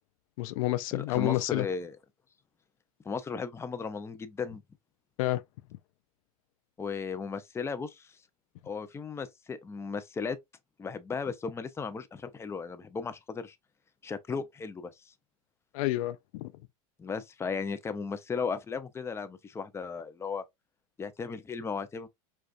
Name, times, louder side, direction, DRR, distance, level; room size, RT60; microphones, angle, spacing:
voice 1, 0.4-1.7 5.2-5.4 15.7-16.5, left 16 dB, 70° left, 0.4 m, -29 dB
voice 2, 0.9-2.0 3.0-4.6 6.8-8.2 8.6-10.4 10.8-13.6 14.0-15.1 17.0-20.4 21.0-22.1, left 5 dB, 15° left, 0.5 m, -36 dB
4.9 x 2.4 x 2.4 m
hypercardioid pair, 105°, 19 cm